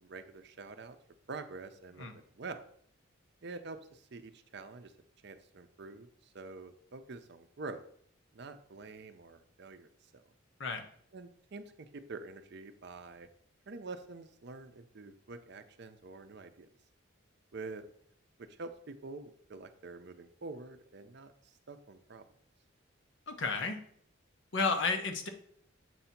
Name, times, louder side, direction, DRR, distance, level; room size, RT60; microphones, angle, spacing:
voice 1, 0.0-1.0 1.3-2.6 3.4-4.9 5.2-7.8 8.3-10.2 11.1-13.3 13.7-16.7 17.5-17.8 18.4-21.3 21.7-22.2, right 3 dB, 55° right, 9 dB, 0.5 m, -46 dB
voice 2, 23.3-23.8 24.5-25.3, left 4 dB, 60° left, 5 dB, 0.8 m, -32 dB
7.6 x 2.7 x 5.7 m, 0.65 s
head